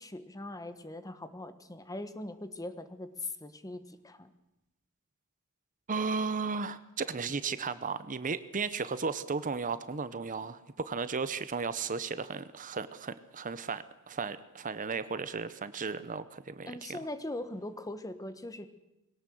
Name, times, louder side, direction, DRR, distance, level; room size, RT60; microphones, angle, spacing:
voice 1, 0.0-4.3 16.7-18.7, left 2 dB, 15° left, 11 dB, 1.3 m, -41 dB
voice 2, 5.9-17.0, right 5 dB, 35° right, 14 dB, 0.8 m, -35 dB
21.5 x 18.0 x 7.7 m, 0.92 s
head